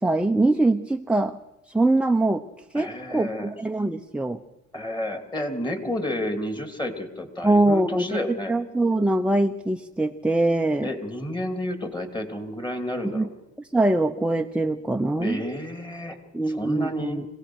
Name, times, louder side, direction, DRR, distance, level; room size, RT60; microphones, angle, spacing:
voice 1, 0.0-1.4 1.7-2.4 2.7-4.4 7.4-8.2 8.5-10.9 13.1-13.3 13.6-15.4 16.3-17.3, right 2 dB, 5° right, 6 dB, 0.8 m, -23 dB
voice 2, 2.7-3.5 4.7-8.5 10.8-13.3 15.2-16.2 16.5-17.2, left 1 dB, 15° left, 7 dB, 3.2 m, -31 dB
25.5 x 17.5 x 6.4 m, 0.97 s
cardioid pair, 90°, 30 cm